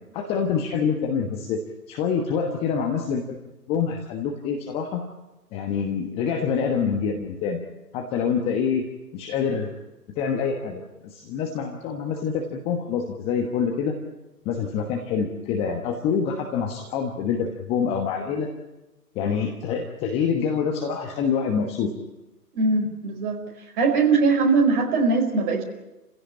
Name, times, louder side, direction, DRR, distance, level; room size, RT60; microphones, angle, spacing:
voice 1, 0.1-1.6 1.9-3.4 3.7-5.0 5.5-7.6 7.9-8.9 9.1-9.7 10.2-13.9 14.4-18.5 19.1-21.9, left 6 dB, 10° left, 3 dB, 1.2 m, -26 dB
voice 2, 22.5-23.4 23.8-25.6, right 4 dB, 30° right, 3 dB, 4.8 m, -21 dB
29.5 x 16.5 x 8.6 m, 1.0 s
figure-of-eight pair, 140°, 48 cm